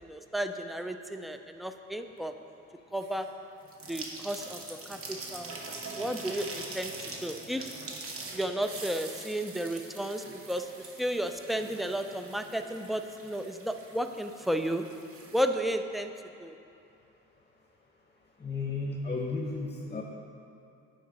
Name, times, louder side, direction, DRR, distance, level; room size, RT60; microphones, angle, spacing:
voice 1, 0.0-2.3 2.9-3.3 3.9-4.6 4.9-5.5 5.9-6.9 7.2-7.7 8.3-10.7 11.0-14.8 15.3-16.1 16.4-16.6, equal, ahead, 7 dB, 0.3 m, -33 dB
sound 1, 3.0-3.3 3.6-15.4, right 3 dB, 45° right, 1.0 m, -43 dB
voice 2, 18.4-20.0, left 3 dB, 20° left, 0 dB, 0.8 m, -33 dB
9.1 x 3.9 x 5.1 m, 2.6 s
cardioid pair, 90°, 30 cm